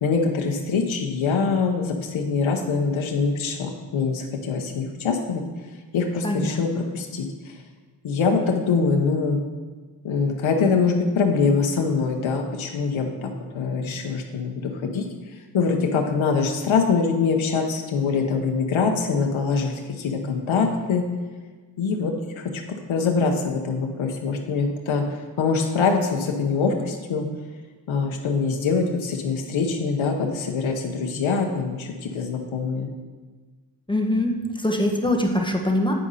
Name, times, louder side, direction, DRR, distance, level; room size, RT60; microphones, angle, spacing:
voice 1, 0.0-5.4 5.9-7.3 8.0-9.4 10.0-15.0 15.5-21.0 21.8-25.0 25.4-27.3 27.9-32.9, left 5 dB, 90° left, 2 dB, 0.9 m, -24 dB
voice 2, 6.2-6.9 33.9-35.9, left 1 dB, 10° left, 1 dB, 1.2 m, -23 dB
8.9 x 5.0 x 5.5 m, 1.4 s
cardioid pair, 60°, 46 cm